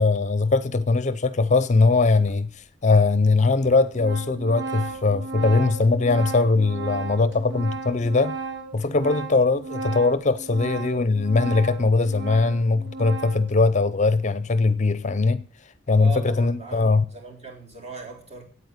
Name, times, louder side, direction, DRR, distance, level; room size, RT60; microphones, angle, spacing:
voice 1, 0.0-8.4 8.7-15.5 15.9-17.1, left 3 dB, 40° left, 0.6 m, -21 dB
Organ, 2.3-2.4 3.2-3.3 3.6-13.5, right 3 dB, 65° right, 3.3 m, -34 dB
voice 2, 16.0-18.4, right 5 dB, 35° right, 4.1 m, -39 dB
9.1 x 8.6 x 9.4 m
head